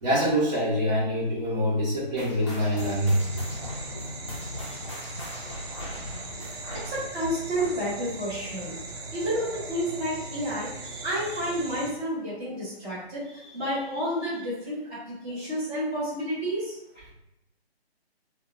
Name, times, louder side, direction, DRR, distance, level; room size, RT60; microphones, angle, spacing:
voice 1, 0.0-3.2, equal, 40° right, -8 dB, 1.0 m, -25 dB
sound 1, 2.2-9.0 9.3-9.6 10.2-10.3 11.1-11.2, left 1 dB, 30° left, 0.5 m, -40 dB
sound 2, 2.8-11.9, right 2 dB, 70° right, 0.5 m, -39 dB
voice 2, 6.8-8.7 9.1-16.8, equal, 15° right, -13 dB, 1.0 m, -30 dB
2.6 x 2.0 x 2.6 m, 0.89 s
figure-of-eight pair, 145°, 32 cm